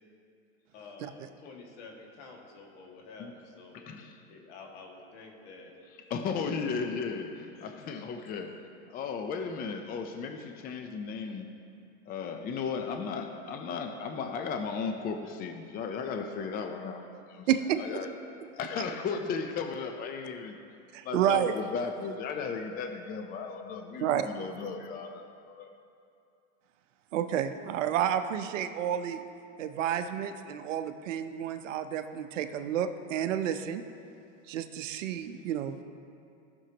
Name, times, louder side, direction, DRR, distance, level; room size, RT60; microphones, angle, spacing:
voice 1, 0.7-3.8 4.3-5.7 7.5-8.0, left 3 dB, 65° left, 0 dB, 2.0 m, -49 dB
voice 2, 3.7-4.2 6.1-8.6 8.9-11.5 12.1-17.0 17.3-17.4 17.8-18.1 18.5-20.5 21.0-25.7, left 5 dB, 25° left, 5 dB, 0.6 m, -35 dB
voice 3, 17.5-17.8 20.9-21.6 24.0-24.3 27.1-29.2 29.6-33.8 34.5-35.8, right 10 dB, 80° right, 9 dB, 0.8 m, -30 dB
17.0 x 6.3 x 2.9 m, 2.5 s
supercardioid pair, 130°, 37 cm